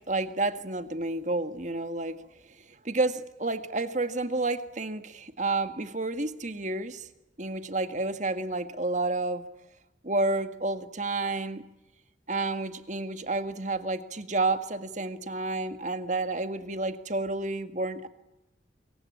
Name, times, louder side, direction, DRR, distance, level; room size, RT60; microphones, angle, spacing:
voice 1, 0.1-2.2 2.6-7.1 7.4-9.5 10.0-11.6 12.3-18.1, right 2 dB, 40° right, 9 dB, 1.8 m, -30 dB
27.0 x 23.5 x 8.8 m, 0.96 s
head